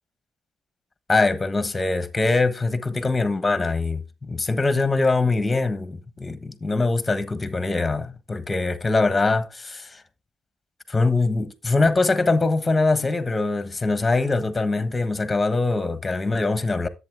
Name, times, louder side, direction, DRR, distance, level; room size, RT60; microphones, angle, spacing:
voice 1, 1.1-10.0 10.9-16.9, left 3 dB, 20° left, 1.3 m, -23 dB
10.5 x 8.2 x 3.5 m
cardioid pair, 90°, 0 cm